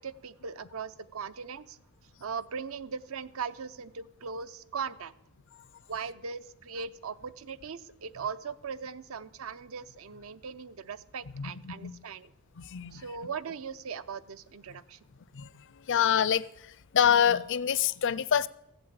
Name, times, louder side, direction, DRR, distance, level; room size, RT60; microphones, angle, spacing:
voice 1, 0.0-1.8 2.2-5.1 5.9-12.3 12.9-15.0, right 6 dB, 65° right, 0.7 m, -39 dB
voice 2, 11.3-12.0 12.6-13.0 15.3-15.5 15.9-16.4 16.9-18.5, left 8 dB, 55° left, 0.5 m, -26 dB
15.0 x 7.8 x 8.8 m
head